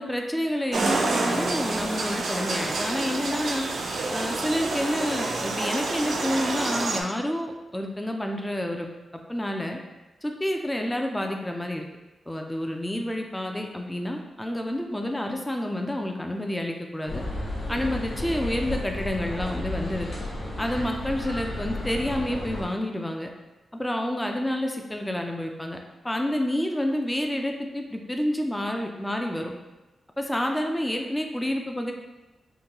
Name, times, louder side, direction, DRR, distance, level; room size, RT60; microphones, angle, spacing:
voice 1, 0.0-3.7 4.1-8.9 9.3-9.8 10.2-11.9 12.3-17.2 17.7-20.2 20.6-23.3 23.7-25.8 26.0-29.5 30.2-31.9, left 1 dB, 10° left, 2 dB, 0.3 m, -29 dB
sound 1, 0.7-7.0, right 3 dB, 75° right, 0.4 m, -28 dB
sound 2, 17.1-22.6, left 1 dB, 80° left, 1.1 m, -33 dB
3.7 x 2.2 x 2.8 m, 1.1 s
cardioid pair, 70°, 0 cm